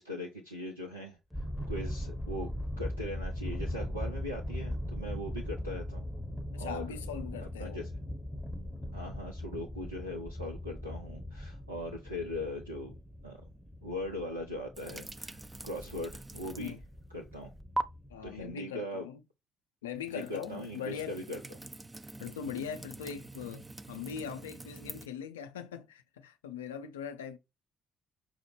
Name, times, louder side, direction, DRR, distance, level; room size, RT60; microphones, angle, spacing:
voice 1, 0.0-2.5 2.8-6.0 6.6-7.0 7.4-7.9 8.9-12.9 13.2-13.4 13.8-16.7 17.1-17.5 18.2-19.1 20.1-21.4, left 1 dB, 90° right, 0.4 m, -40 dB
sound 1, 1.3-18.5, left 1 dB, ahead, 0.8 m, -40 dB
voice 2, 6.5-7.8 16.6-16.8 18.1-19.2 19.8-21.2 22.2-27.4, left 8 dB, 80° left, 0.4 m, -41 dB
sound 2, 14.8-16.9 17.2-17.8 20.0-25.1, right 2 dB, 20° right, 0.4 m, -43 dB
5.9 x 2.1 x 3.1 m
figure-of-eight pair, 45°, 0 cm